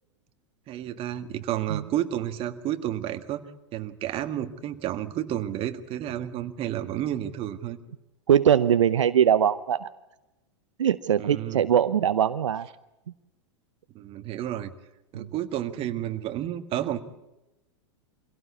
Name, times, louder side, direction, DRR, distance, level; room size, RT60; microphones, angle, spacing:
voice 1, 0.7-3.4 3.7-7.8 11.2-11.7 13.9-14.7 15.1-17.0, right 12 dB, 35° right, 9 dB, 1.7 m, -31 dB
voice 2, 8.3-9.9 10.8-12.7 15.1-15.3, right 9 dB, 80° right, 13 dB, 0.7 m, -21 dB
25.0 x 17.0 x 8.4 m, 0.98 s
hypercardioid pair, 105°, 16 cm